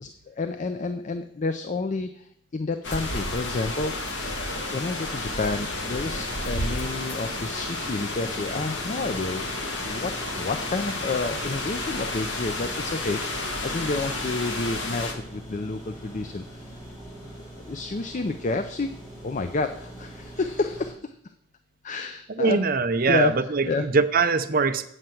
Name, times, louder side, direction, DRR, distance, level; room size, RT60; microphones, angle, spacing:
voice 1, 0.0-3.9 4.7-16.7 17.7-18.9 19.2-21.1 21.8-22.6 23.1-23.9, left 3 dB, 35° left, 8 dB, 0.4 m, -30 dB
sound 1, 2.8-15.1, left 2 dB, 60° left, 1.8 m, -31 dB
sound 2, 5.8-20.9, right 1 dB, 20° left, 4.4 m, -43 dB
voice 2, 22.4-24.9, right 4 dB, 45° right, 7 dB, 0.6 m, -22 dB
7.9 x 5.7 x 7.7 m, 0.77 s
head